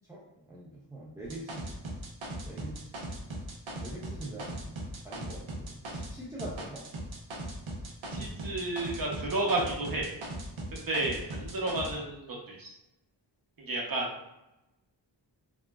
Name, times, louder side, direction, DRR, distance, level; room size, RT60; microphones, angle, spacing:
voice 1, 0.5-1.8 2.5-3.1 3.8-6.8, right 1 dB, 5° right, -6 dB, 0.5 m, -44 dB
sound 1, 1.2-6.1 6.4-11.9, right 1 dB, 90° right, 0.6 m, -39 dB
voice 2, 8.1-10.1 10.7-12.7 13.6-14.1, right 2 dB, 50° right, -2 dB, 0.8 m, -32 dB
2.8 x 2.4 x 2.3 m, 0.91 s
wide cardioid pair, 70°, 46 cm